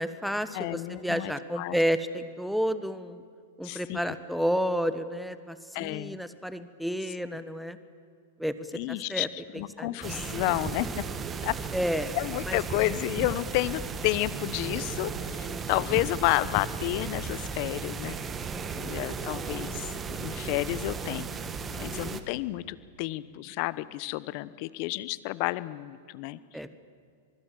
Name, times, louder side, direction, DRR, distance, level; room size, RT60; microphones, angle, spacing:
voice 1, 0.0-3.2 3.6-7.8 8.4-9.3 9.8-9.9 11.7-12.2 12.5-12.6 15.5-15.6 18.5-19.0 21.7-21.8 26.5-26.7, equal, ahead, 12 dB, 1.3 m, -31 dB
voice 2, 0.5-1.8 3.6-4.1 5.7-6.2 8.7-11.0 11.4-11.6 12.1-18.2 18.7-21.3 21.8-26.4, left 19 dB, 50° left, 17 dB, 0.9 m, -31 dB
sound 1, 10.0-22.2, right 5 dB, 20° right, 1.6 m, -35 dB
26.0 x 20.5 x 7.6 m, 2.3 s
hypercardioid pair, 120°, 0 cm